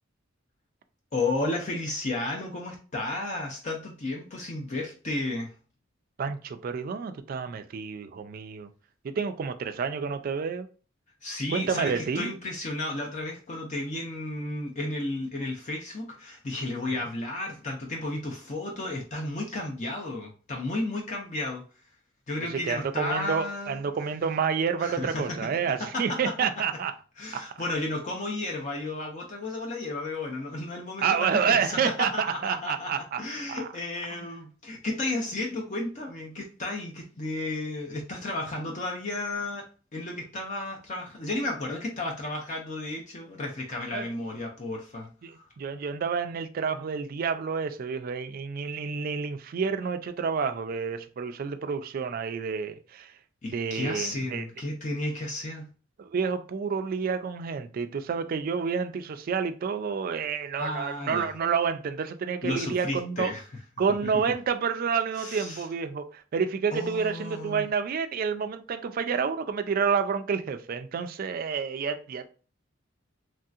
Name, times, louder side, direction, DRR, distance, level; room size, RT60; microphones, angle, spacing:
voice 1, 1.1-5.5 11.2-21.6 22.3-23.8 24.8-25.6 25.9-26.2 27.2-39.6 39.9-45.1 53.4-55.7 60.6-61.3 62.4-63.4 65.2-65.6 66.7-67.7, left 2 dB, 40° left, 0.6 m, -33 dB
voice 2, 6.2-8.7 9.0-10.7 11.5-12.3 22.5-26.9 27.3-27.6 31.0-33.7 34.1-34.3 43.9-44.1 45.2-53.1 53.5-54.5 56.0-63.3 63.8-72.3, right 6 dB, 45° right, 0.3 m, -29 dB
3.1 x 2.7 x 2.4 m
head